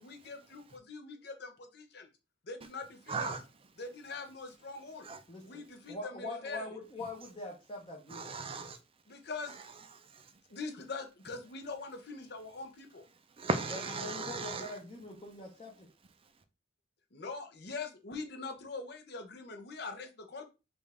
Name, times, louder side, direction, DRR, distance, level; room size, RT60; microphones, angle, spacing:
voice 1, 0.0-2.1 2.4-3.3 3.8-5.1 5.4-6.8 9.1-9.6 10.5-13.0 17.1-20.5, left 4 dB, 60° left, 0.8 m, -43 dB
voice 2, 3.1-3.4 5.0-5.2 8.1-8.8 10.0-10.3 13.4-14.7, right 4 dB, 30° right, 0.5 m, -36 dB
voice 3, 5.3-5.6 5.9-8.3 13.7-15.9, left 2 dB, 30° left, 0.8 m, -43 dB
5.1 x 2.5 x 3.3 m
head